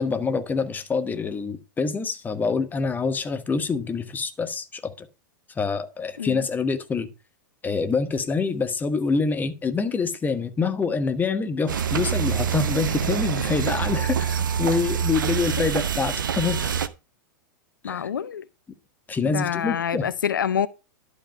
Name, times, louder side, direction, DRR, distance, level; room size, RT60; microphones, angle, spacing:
voice 1, 0.0-5.1 5.6-7.1 7.6-16.8 17.8-18.1 19.1-20.1, left 4 dB, 15° left, 1.1 m, -26 dB
sound 1, 11.7-16.9, right 8 dB, 80° right, 0.7 m, -26 dB
voice 2, 17.8-18.4 19.2-20.7, left 8 dB, 80° left, 0.5 m, -26 dB
11.5 x 5.3 x 4.4 m
hypercardioid pair, 100°, 11 cm